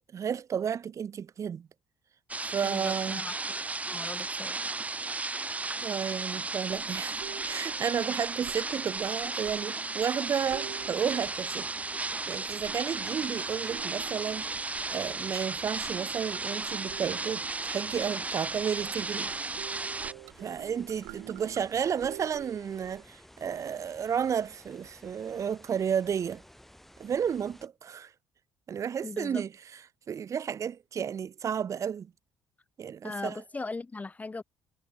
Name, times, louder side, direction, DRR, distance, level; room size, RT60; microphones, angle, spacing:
voice 1, 0.1-1.7 2.4-3.2 5.8-7.2 7.4-11.7 12.3-14.6 14.9-19.3 20.4-26.4 27.0-28.1 28.7-29.5 30.1-32.1 32.8-33.4, right 7 dB, 45° right, 1.4 m, -32 dB
sound 1, 2.3-20.1, right 3 dB, 20° right, 0.9 m, -34 dB
voice 2, 2.6-3.3 3.9-4.6 29.0-29.4 33.0-34.4, left 3 dB, 20° left, 0.7 m, -39 dB
sound 2, 6.7-23.0, right 23 dB, 75° right, 1.4 m, -49 dB
sound 3, 10.4-27.7, equal, 5° left, 2.4 m, -55 dB
hypercardioid pair, 60°, 7 cm